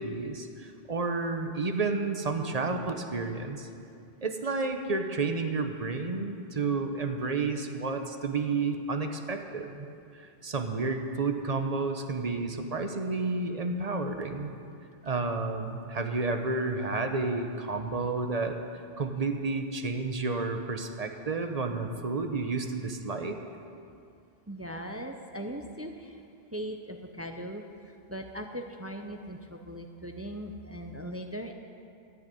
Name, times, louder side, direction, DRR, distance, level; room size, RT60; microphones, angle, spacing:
voice 1, 0.0-3.7 4.2-9.9 10.1-14.5 15.0-23.4, right 3 dB, 40° right, 6 dB, 0.9 m, -31 dB
voice 2, 24.5-26.2 26.5-31.5, equal, 15° right, 4 dB, 0.6 m, -39 dB
14.0 x 6.4 x 9.1 m, 2.5 s
omnidirectional pair, 1.0 m